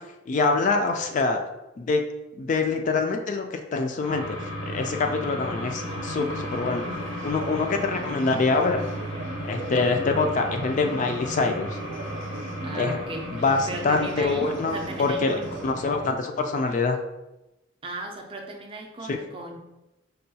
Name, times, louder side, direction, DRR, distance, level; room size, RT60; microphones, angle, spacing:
voice 1, 0.0-1.4 1.8-2.0 2.3-6.8 7.2-8.8 9.4-11.8 12.7-13.0 13.3-15.3 15.6-17.0 19.1-19.2, left 3 dB, 40° left, 4 dB, 0.3 m, -25 dB
sound 1, 4.0-16.1, equal, 85° left, 0.8 m, -35 dB
sound 2, 5.8-15.7, right 2 dB, 70° right, 0.6 m, -40 dB
voice 2, 12.6-13.3 13.7-15.6 17.8-19.6, right 2 dB, 25° right, 2 dB, 0.4 m, -37 dB
5.3 x 2.2 x 2.7 m, 0.96 s
head